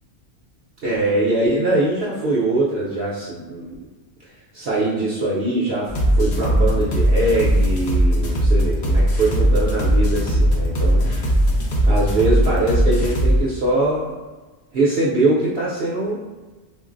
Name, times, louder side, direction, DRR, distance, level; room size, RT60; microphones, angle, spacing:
voice 1, 0.8-3.9 4.5-11.1 11.9-14.2 14.7-16.3, right 2 dB, 60° right, -6 dB, 0.8 m, -22 dB
sound 1, 5.9-13.4, equal, 60° left, 0.9 m, -18 dB
4.4 x 2.0 x 2.5 m, 1.2 s
omnidirectional pair, 1.3 m